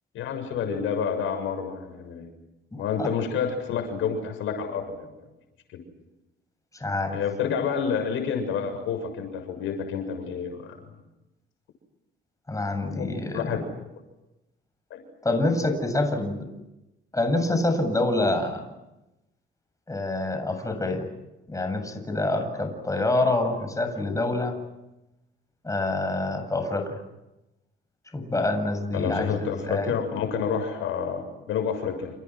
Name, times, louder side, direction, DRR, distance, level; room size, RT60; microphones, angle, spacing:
voice 1, 0.1-2.3 2.7-5.2 7.1-10.8 13.0-13.1 13.3-13.6 14.9-15.0 28.9-32.1, left 6 dB, 85° left, 6 dB, 7.1 m, -29 dB
voice 2, 6.7-7.2 12.5-13.6 15.2-16.5 17.1-18.6 19.9-21.1 21.5-24.5 25.6-27.0 28.1-29.9, left 2 dB, 15° left, 6 dB, 7.9 m, -26 dB
30.0 x 29.0 x 6.2 m, 0.96 s
cardioid pair, 90°, 20 cm